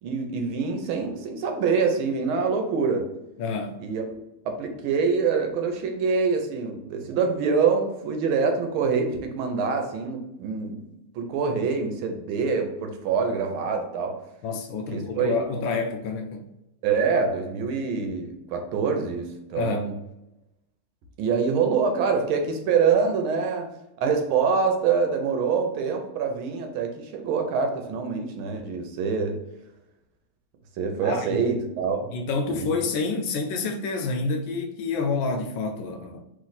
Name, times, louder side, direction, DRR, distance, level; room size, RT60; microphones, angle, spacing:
voice 1, 0.0-3.1 3.8-4.0 4.4-10.8 11.1-14.2 14.9-15.3 16.8-19.9 21.2-23.7 24.0-29.4 30.8-32.1 32.5-32.7, right 5 dB, 80° right, 1.6 m, -25 dB
voice 2, 3.4-3.9 14.4-16.5 19.6-19.9 31.0-31.3 32.1-36.2, left 4 dB, 75° left, 1.3 m, -28 dB
3.2 x 3.2 x 3.9 m
omnidirectional pair, 2.3 m